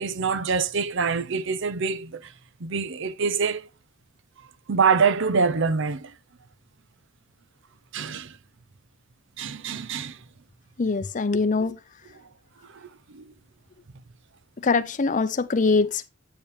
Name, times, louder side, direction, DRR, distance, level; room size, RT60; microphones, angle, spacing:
voice 1, 0.0-2.3 2.6-3.7 4.7-6.1 7.9-8.3 9.4-10.2 12.7-13.2, right 5 dB, 60° right, 0.7 m, -25 dB
voice 2, 10.8-11.8 14.6-16.1, left 4 dB, 40° left, 0.6 m, -23 dB
8.5 x 7.1 x 3.3 m
head